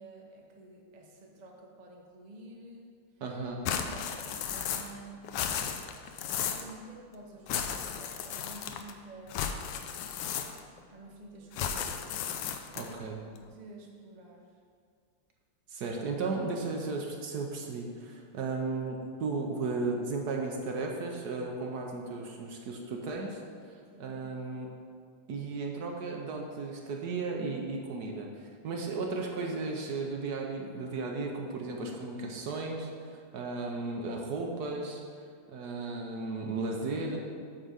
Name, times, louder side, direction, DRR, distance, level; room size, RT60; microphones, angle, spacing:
voice 1, 0.0-3.0 3.8-5.2 6.4-9.9 10.9-12.0 13.1-13.2 13.5-14.6 23.9-24.2, right 2 dB, 35° right, -1 dB, 0.7 m, -50 dB
voice 2, 3.2-3.7 12.8-13.2 15.7-23.4 23.7-24.7 25.3-35.0 35.5-37.2, right 3 dB, 65° right, 1 dB, 1.2 m, -35 dB
sound 1, 3.6-5.0 5.2-6.7 7.5-8.9 9.3-10.8 11.5-13.0, left 8 dB, 75° left, 1.2 m, -34 dB
8.7 x 3.9 x 6.3 m, 2.1 s
omnidirectional pair, 2.0 m